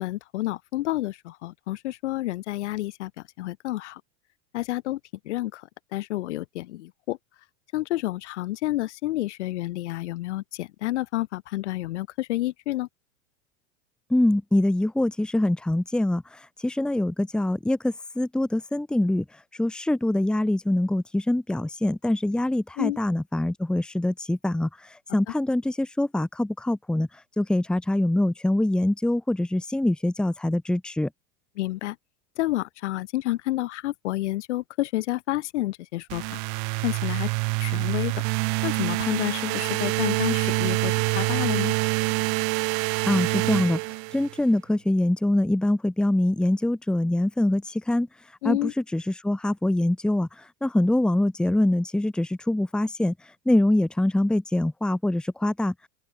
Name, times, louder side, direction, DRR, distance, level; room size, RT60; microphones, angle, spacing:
voice 1, 0.0-3.1 3.4-4.0 4.5-5.0 5.3-5.6 5.9-7.2 7.7-12.9 22.8-23.0 31.6-32.0 32.4-36.4 36.8-37.3 37.6-38.1 38.6-41.7 48.4-48.7, left 16 dB, 70° left, 7.3 m, -29 dB
voice 2, 14.1-16.2 16.6-19.2 19.6-24.7 25.1-27.1 27.4-31.1 43.1-43.8 44.1-48.1 48.4-50.3 50.6-53.1 53.5-55.7, left 1 dB, ahead, 1.8 m, -24 dB
sound 1, 36.1-44.4, right 40 dB or more, 45° right, 3.4 m, -26 dB
open air
supercardioid pair, 165°, 36 cm